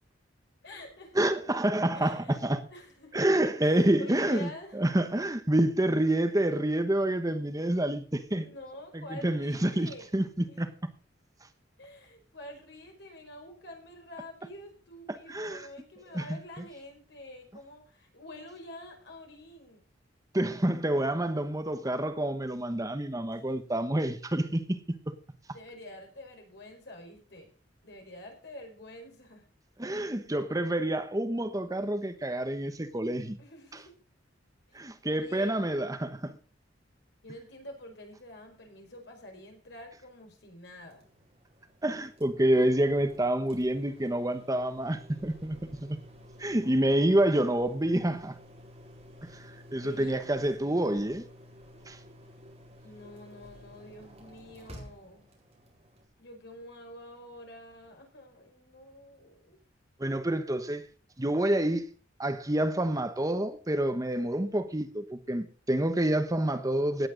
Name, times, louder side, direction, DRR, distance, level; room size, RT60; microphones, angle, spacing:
voice 1, 0.6-1.2 1.9-2.4 2.7-3.1 3.6-4.7 8.3-10.1 10.5-10.6 11.8-19.8 23.4-23.5 25.5-27.5 27.8-29.4 33.4-33.9 35.1-35.5 37.2-41.1 45.4-45.8 49.8-51.1 52.8-55.2 56.2-59.6, left 1 dB, 65° left, 5.0 m, -48 dB
voice 2, 1.1-2.6 3.1-8.4 8.9-10.7 15.3-15.7 16.1-16.4 20.3-24.8 29.8-33.4 34.7-36.4 41.8-45.6 45.8-46.0 46.4-48.4 49.3-51.2 51.9-52.0 60.0-60.8 61.2-61.9 62.2-67.1, right 1 dB, 20° right, 1.0 m, -28 dB
sound 1, 40.8-56.0, equal, 35° right, 4.7 m, -52 dB
17.5 x 8.6 x 3.9 m
head